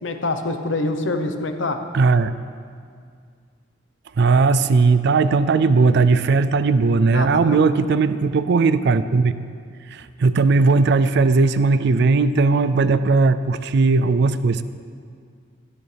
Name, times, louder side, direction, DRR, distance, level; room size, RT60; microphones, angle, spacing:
voice 1, 0.0-1.8 7.1-7.6, left 2 dB, 70° left, 7 dB, 0.9 m, -25 dB
voice 2, 1.9-2.3 4.2-9.3 9.9-14.6, right 4 dB, 60° right, 13 dB, 0.4 m, -17 dB
13.5 x 12.5 x 3.4 m, 2.2 s
head